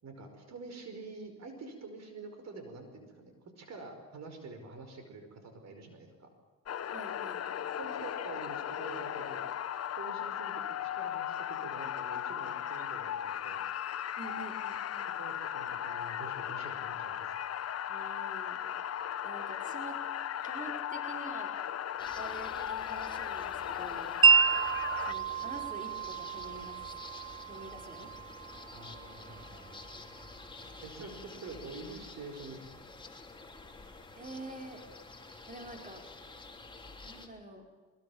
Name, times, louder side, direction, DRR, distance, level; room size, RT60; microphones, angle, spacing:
voice 1, 0.0-6.3 7.8-9.5 10.0-13.6 15.1-17.3 28.7-30.1 30.8-32.6, right 3 dB, 60° right, 6 dB, 5.2 m, -47 dB
sound 1, 6.7-25.1, left 10 dB, 55° left, 1.1 m, -37 dB
voice 2, 6.9-7.5 14.2-15.1 17.9-18.6 19.2-20.0 20.4-21.5 22.2-24.1 25.1-26.8 27.5-28.1 34.2-34.8 35.5-36.0 37.0-37.6, right 2 dB, 25° right, 2 dB, 5.2 m, -46 dB
sound 2, 22.0-37.3, left 3 dB, 15° left, 3.2 m, -49 dB
Wind chime, 24.2-30.3, right 6 dB, 45° right, 1.2 m, -30 dB
23.5 x 22.5 x 7.3 m, 1.5 s
cardioid pair, 90°, 30 cm